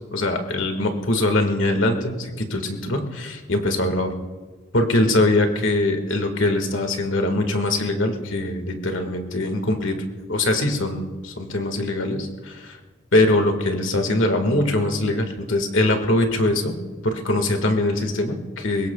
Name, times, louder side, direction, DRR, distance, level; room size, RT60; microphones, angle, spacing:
voice 1, 0.1-4.1 4.7-10.0 10.3-12.8 13.1-16.7 17.0-18.9, left 2 dB, 75° left, 5 dB, 1.8 m, -22 dB
23.0 x 20.5 x 2.3 m, 1.3 s
head